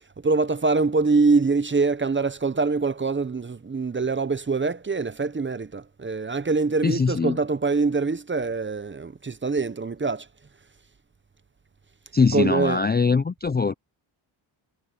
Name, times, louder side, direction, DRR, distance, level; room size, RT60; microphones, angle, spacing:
voice 1, 0.2-10.3 12.3-12.8, right 4 dB, 25° right, 0.6 m, -24 dB
voice 2, 6.8-7.4 12.1-13.7, left 4 dB, 25° left, 0.3 m, -22 dB
wide cardioid pair, 150°, 48 cm